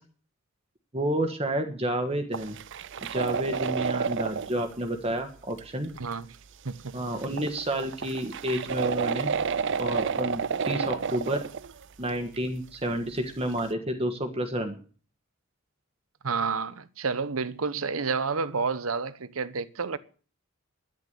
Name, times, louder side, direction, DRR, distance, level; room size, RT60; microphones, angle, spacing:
voice 1, 0.9-2.6 3.1-5.9 6.9-9.3 9.8-11.4 12.0-14.7, right 1 dB, 30° right, 1.5 m, -30 dB
sound 1, 2.3-4.7 5.6-5.7 6.1-6.2 6.8-6.9 7.0-11.8 12.1-12.4 12.9-13.0 13.6-13.7, right 6 dB, 60° right, 0.6 m, -30 dB
voice 2, 6.0-6.4 6.6-7.0 16.2-20.0, right 5 dB, 90° right, 1.0 m, -30 dB
11.0 x 10.5 x 8.2 m
head